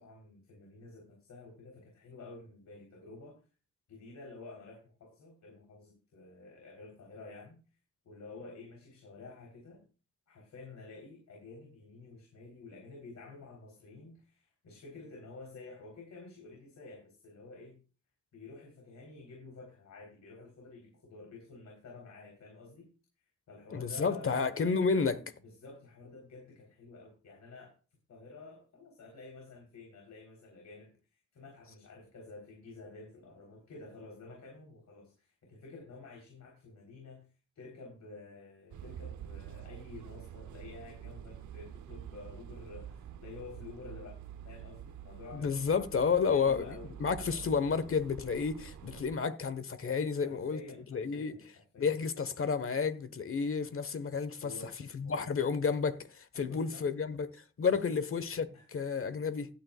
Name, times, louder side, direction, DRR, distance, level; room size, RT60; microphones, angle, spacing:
voice 1, 0.0-3.4 3.9-7.6 8.1-9.8 10.3-17.8 18.3-22.9 23.2-24.5 25.4-27.7 28.1-37.3 37.6-45.5 46.3-47.6 50.2-51.9 54.4-54.7 55.0-55.4 56.3-56.9 57.9-58.0 58.5-58.6, left 3 dB, 70° left, 3.9 m, -50 dB
voice 2, 23.7-25.2 45.3-46.7 47.0-50.6 50.9-51.3 51.8-54.5 54.9-59.5, left 5 dB, 45° left, 1.3 m, -31 dB
sound 1, 38.7-49.2, right 9 dB, 80° right, 0.9 m, -47 dB
16.0 x 9.4 x 2.4 m
cardioid pair, 75°, 29 cm